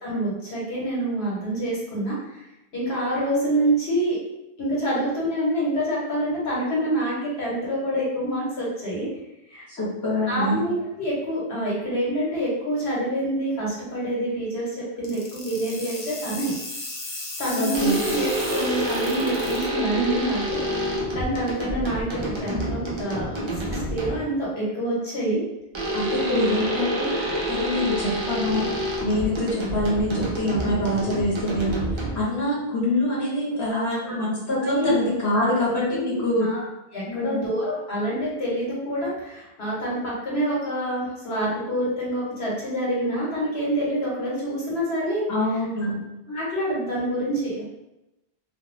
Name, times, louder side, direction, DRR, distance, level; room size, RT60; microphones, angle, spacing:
voice 1, 0.0-2.4 2.7-4.2 4.6-9.1 9.5-9.6 10.3-16.5 17.4-25.4 33.7-34.1 34.6-34.9 35.3-35.5 35.9-36.6 36.9-45.2 45.8-45.9 46.3-47.6, right 1 dB, 80° left, -6 dB, 1.2 m, -27 dB
voice 2, 9.8-10.6 17.6-18.0 25.9-27.1 27.5-28.7 29.0-36.5 37.1-37.4 45.3-46.0, left 1 dB, 20° left, -7 dB, 0.8 m, -25 dB
sound 1, 15.0-19.6, left 2 dB, 55° left, 0.7 m, -35 dB
sound 2, 17.7-24.4 25.7-32.4, equal, 45° right, 0.3 m, -28 dB
2.3 x 2.3 x 3.0 m, 0.93 s
omnidirectional pair, 1.1 m